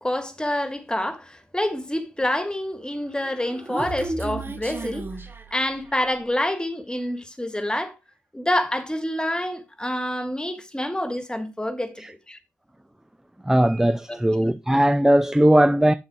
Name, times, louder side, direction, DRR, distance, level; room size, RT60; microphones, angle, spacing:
voice 1, 0.0-5.1 5.5-7.9 8.3-12.4 14.1-14.2, left 1 dB, 10° left, 2.2 m, -27 dB
Human voice, 3.1-6.1, right 3 dB, 30° right, 1.8 m, -34 dB
voice 2, 13.4-15.9, right 1 dB, 5° right, 0.5 m, -18 dB
9.7 x 7.1 x 3.8 m
hypercardioid pair, 40°, 8 cm